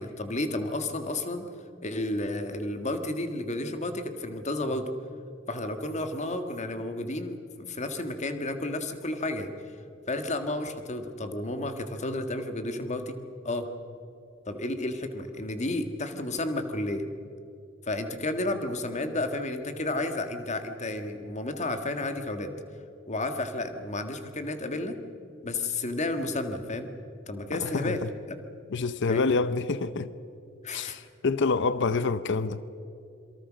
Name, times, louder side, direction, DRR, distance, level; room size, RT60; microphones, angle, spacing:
voice 1, 0.0-1.5 1.8-4.9 5.5-9.5 10.1-13.2 13.4-13.7 14.5-17.1 17.8-22.5 23.1-24.9 25.4-26.9 27.3-28.4 29.1-29.3 30.6-31.0, left 2 dB, 35° left, 1.8 m, -32 dB
voice 2, 27.5-28.1 28.7-30.1 30.7-32.7, left 4 dB, 60° left, 0.7 m, -27 dB
27.5 x 23.5 x 6.3 m
head